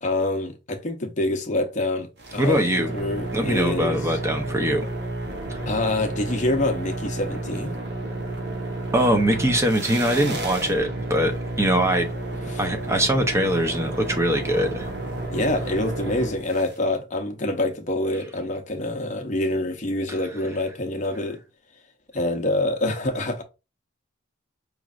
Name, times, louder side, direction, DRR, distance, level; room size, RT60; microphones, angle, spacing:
voice 1, 0.0-2.6 2.9-4.0 5.6-7.8 12.5-12.6 15.3-21.4 22.1-23.4, left 1 dB, 35° left, 0.7 m, -26 dB
sound 1, 2.2-16.8, right 2 dB, 55° right, 1.1 m, -31 dB
voice 2, 2.4-2.9 3.3-4.9 5.5-5.6 8.9-11.3 11.6-12.1 12.6-14.9, equal, 15° right, 0.6 m, -22 dB
5.0 x 3.1 x 2.4 m
head